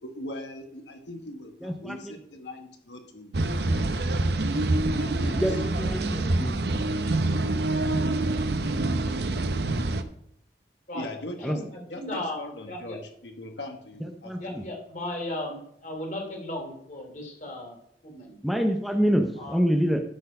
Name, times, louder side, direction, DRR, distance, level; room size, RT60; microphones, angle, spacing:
voice 1, 0.0-5.9 10.9-11.6 11.9-14.8, left 1 dB, 90° left, 5 dB, 1.2 m, -41 dB
voice 2, 1.6-2.1 5.3-6.6 11.4-11.6 14.2-14.6 18.4-20.0, equal, ahead, 4 dB, 0.6 m, -26 dB
sound 1, 3.3-10.0, right 2 dB, 70° right, 0.7 m, -26 dB
voice 3, 9.0-9.3 10.9-11.1 11.4-11.6 11.9-12.4 12.7-13.0 14.4-17.7 18.0-18.4 19.4-19.6, left 1 dB, 45° left, 1 dB, 2.7 m, -36 dB
12.0 x 4.4 x 5.4 m, 0.69 s
head